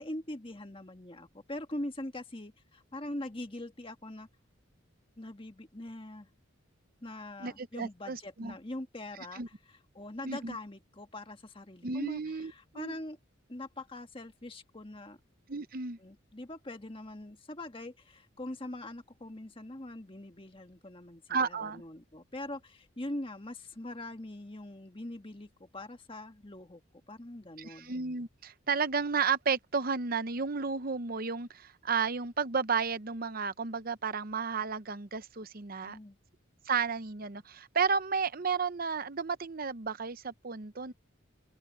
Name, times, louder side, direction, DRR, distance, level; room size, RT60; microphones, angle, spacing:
voice 1, 0.0-4.3 5.2-6.3 7.0-9.4 9.9-13.2 13.5-15.2 16.0-26.8 27.1-27.9 35.8-36.2, left 1 dB, 25° left, 1.6 m, -42 dB
voice 2, 7.4-8.6 9.3-9.5 10.2-10.6 11.8-13.0 15.5-16.0 21.3-21.8 27.6-36.0 36.7-40.9, right 5 dB, 45° right, 0.8 m, -32 dB
open air
head